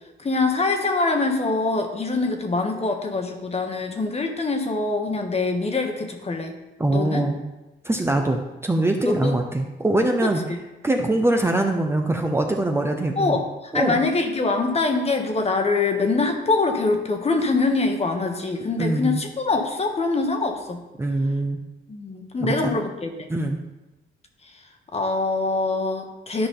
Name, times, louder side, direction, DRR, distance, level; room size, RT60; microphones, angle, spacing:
voice 1, 0.2-6.5 6.9-7.3 9.1-9.4 10.2-10.6 13.2-20.8 21.9-23.3 24.9-26.5, left 3 dB, 30° left, 4 dB, 1.3 m, -24 dB
voice 2, 6.8-7.4 7.8-10.4 10.8-13.4 13.7-14.0 18.8-19.2 21.0-21.6 22.4-22.8 23.3-23.6, right 2 dB, 10° right, 3 dB, 0.7 m, -23 dB
12.0 x 5.0 x 3.8 m, 1.0 s
cardioid pair, 90°, 20 cm